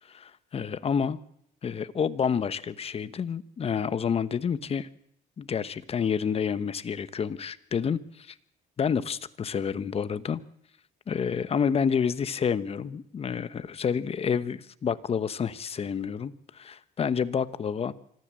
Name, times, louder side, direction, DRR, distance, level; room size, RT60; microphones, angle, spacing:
voice 1, 0.1-1.2 1.6-4.9 5.4-8.3 8.8-10.4 11.1-17.9, left 7 dB, 35° left, 14 dB, 1.1 m, -29 dB
25.5 x 14.0 x 7.6 m, 0.71 s
cardioid pair, 110°, 17 cm